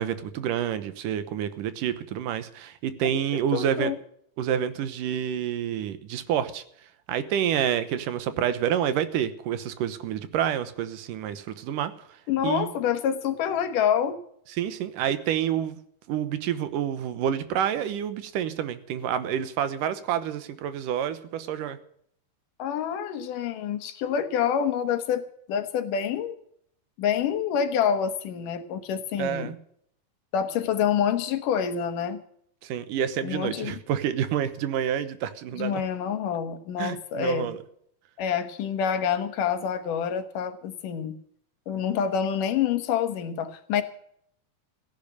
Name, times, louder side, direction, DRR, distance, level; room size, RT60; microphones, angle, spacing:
voice 1, 0.0-3.9 4.4-6.6 7.1-11.9 12.4-12.7 14.5-15.8 16.1-21.8 29.2-29.5 32.6-35.8 36.8-37.6, right 9 dB, 80° right, 12 dB, 2.6 m, -28 dB
voice 2, 3.3-4.0 12.3-14.2 22.6-26.4 27.0-29.5 30.3-32.2 33.2-33.8 35.6-37.5 38.2-41.2 41.7-43.8, left 8 dB, 75° left, 9 dB, 2.9 m, -27 dB
16.0 x 10.5 x 6.9 m, 0.66 s
omnidirectional pair, 3.8 m